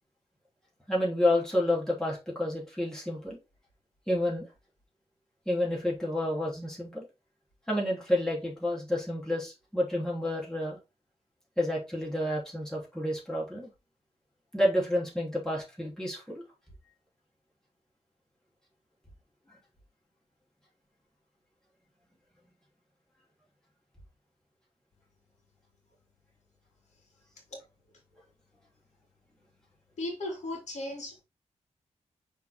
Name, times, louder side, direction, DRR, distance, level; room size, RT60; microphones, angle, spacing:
voice 1, 0.9-3.4 4.1-4.5 5.5-7.0 7.7-10.8 11.6-13.7 14.5-16.4, left 1 dB, 5° left, 2.9 m, -29 dB
voice 2, 30.0-31.2, left 1 dB, 85° left, 2.8 m, -36 dB
5.7 x 4.3 x 3.9 m
wide cardioid pair, 130°, 12 cm